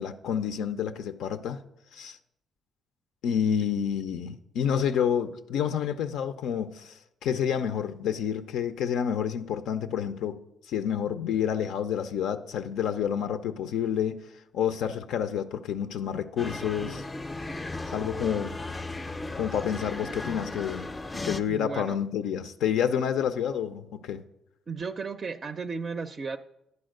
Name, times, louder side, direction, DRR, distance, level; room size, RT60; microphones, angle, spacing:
voice 1, 0.0-1.6 1.9-2.2 3.2-10.4 10.6-14.2 14.5-17.0 17.9-18.5 19.4-20.9 21.2-24.2, left 8 dB, 85° left, 0.4 m, -29 dB
sound 1, 16.4-21.4, left 2 dB, 20° left, 0.5 m, -36 dB
voice 2, 21.5-22.0 24.7-26.4, right 4 dB, 40° right, 0.4 m, -34 dB
9.6 x 4.2 x 6.4 m
cardioid pair, 90°, 0 cm